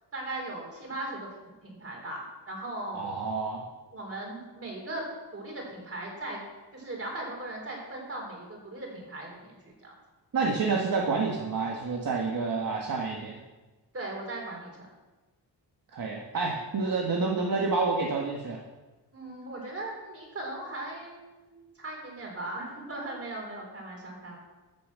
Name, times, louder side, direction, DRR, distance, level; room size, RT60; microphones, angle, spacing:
voice 1, 0.1-3.3 3.9-5.0 5.3-6.4 6.7-9.9 13.9-14.9 19.1-24.4, right 2 dB, 35° right, 0 dB, 3.9 m, -38 dB
voice 2, 2.9-3.6 10.3-13.4 15.9-18.6, right 4 dB, 50° right, 0 dB, 1.5 m, -29 dB
14.0 x 7.2 x 7.4 m, 1.2 s
wide cardioid pair, 165°, 42 cm